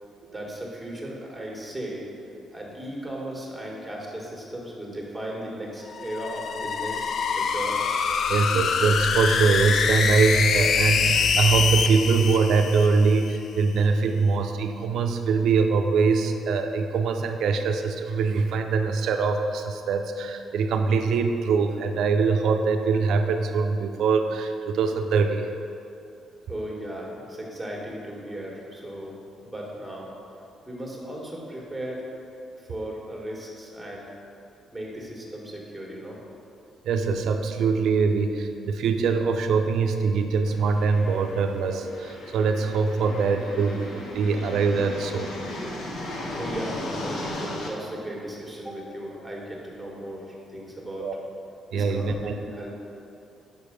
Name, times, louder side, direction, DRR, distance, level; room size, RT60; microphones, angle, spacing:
voice 1, 0.3-2.1 2.5-7.8 26.5-30.1 30.7-32.0 32.6-34.1 34.7-36.2 46.2-51.1 51.7-52.8, right 1 dB, 5° right, -3 dB, 1.5 m, -36 dB
sound 1, 5.9-13.4, left 6 dB, 60° left, 0.3 m, -25 dB
voice 2, 8.3-25.5 36.8-45.3 51.0-51.1 51.7-52.3, right 4 dB, 75° right, 6 dB, 0.4 m, -23 dB
sound 2, 40.5-47.7, left 1 dB, 80° left, 0.9 m, -36 dB
5.4 x 4.7 x 5.0 m, 2.7 s
cardioid pair, 90°, 0 cm